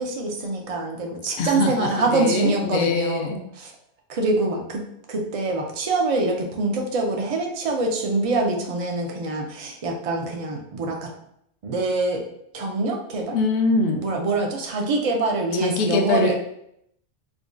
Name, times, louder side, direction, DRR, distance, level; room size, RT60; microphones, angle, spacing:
voice 1, 0.0-3.7 4.1-4.8 5.1-11.1 11.6-12.2 12.5-13.4 14.0-16.3, right 2 dB, 45° right, 2 dB, 0.4 m, -25 dB
voice 2, 1.4-3.4 13.3-14.0 15.6-16.3, left 3 dB, 65° left, 4 dB, 0.7 m, -23 dB
4.8 x 2.3 x 2.5 m, 0.75 s
omnidirectional pair, 1.2 m